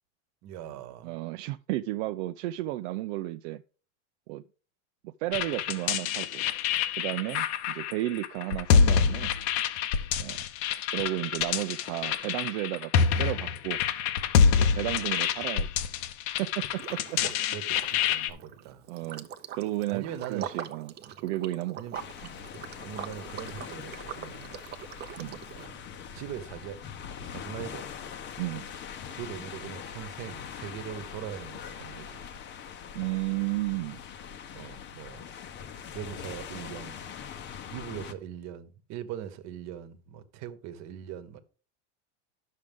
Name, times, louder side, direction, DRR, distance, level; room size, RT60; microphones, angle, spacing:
voice 1, 0.4-1.2 10.3-10.4 17.2-18.9 19.9-20.6 21.0-21.2 21.8-22.0 22.5-24.6 25.6-25.8 26.1-26.8 27.2-27.9 29.1-32.2 34.5-35.2 35.9-37.0 37.7-41.4, right 10 dB, 50° right, 1.2 m, -41 dB
voice 2, 1.0-3.6 4.3-4.4 5.0-6.5 6.9-9.3 10.2-10.4 10.9-13.8 14.6-15.8 16.4-17.2 18.9-19.3 19.5-20.9 21.2-21.8 25.2-25.4 28.4-28.6 32.9-34.0, right 17 dB, 75° right, 0.5 m, -33 dB
sound 1, 5.3-18.3, left 7 dB, 70° left, 1.0 m, -26 dB
Liquid, 16.8-17.4 17.7-25.7, right 9 dB, 30° right, 0.6 m, -42 dB
sound 2, 21.9-38.1, left 8 dB, 30° left, 0.8 m, -42 dB
10.5 x 6.5 x 3.5 m
supercardioid pair, 145°, 36 cm